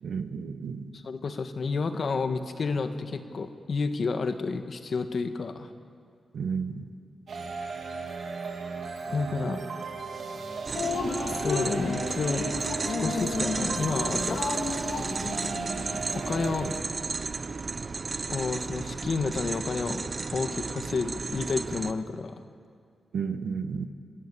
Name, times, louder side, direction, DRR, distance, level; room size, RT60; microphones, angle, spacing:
voice 1, 0.0-0.9 6.3-6.9 23.1-23.9, right 6 dB, 80° right, 9 dB, 1.2 m, -32 dB
voice 2, 0.9-5.7 9.1-9.6 11.4-12.5 12.8-14.4 16.1-16.7 18.3-22.4, left 4 dB, 55° left, 8 dB, 1.4 m, -30 dB
sound 1, 7.3-16.8, right 4 dB, 65° right, 2.5 m, -36 dB
Drip, 10.7-16.0, left 4 dB, 85° left, 2.2 m, -32 dB
sound 2, 10.7-21.9, right 4 dB, 40° right, 0.8 m, -33 dB
27.0 x 13.5 x 8.6 m, 2.2 s
wide cardioid pair, 105°, 0 cm